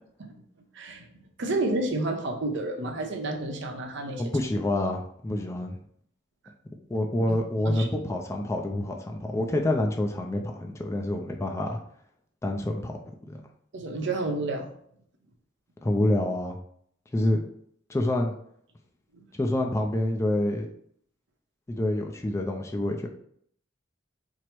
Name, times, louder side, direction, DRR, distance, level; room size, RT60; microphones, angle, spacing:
voice 1, 0.8-1.1 1.4-4.2 7.6-7.9 13.7-14.7, right 2 dB, 65° right, 3 dB, 0.7 m, -30 dB
voice 2, 4.2-5.8 6.9-11.8 12.4-13.0 13.3-13.4 15.8-16.6 17.1-17.4 17.9-18.3 19.3-20.7 21.7-23.1, left 1 dB, 15° left, 2 dB, 0.4 m, -27 dB
4.5 x 2.0 x 4.4 m, 0.66 s
head